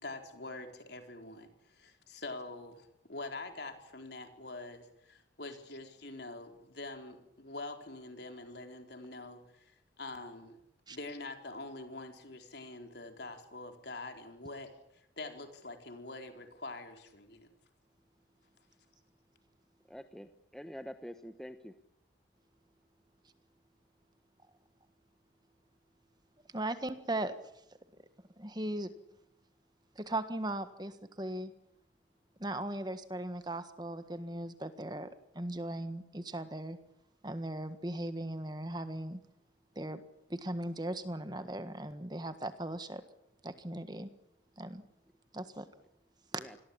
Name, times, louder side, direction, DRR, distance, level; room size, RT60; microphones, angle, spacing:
voice 1, 0.0-10.6 10.9-17.5, left 2 dB, 60° left, 5 dB, 4.4 m, -45 dB
voice 2, 19.9-21.7 46.4-46.6, equal, 5° left, 8 dB, 1.0 m, -46 dB
voice 3, 26.5-27.4 28.4-28.9 29.9-31.5 32.4-35.1 35.3-36.8 37.2-39.2 39.7-40.0 40.3-43.0 43.4-44.1 44.6-44.8 45.3-45.7 46.3-46.4, right 1 dB, 20° right, 10 dB, 1.6 m, -38 dB
28.0 x 21.5 x 8.7 m, 0.80 s
head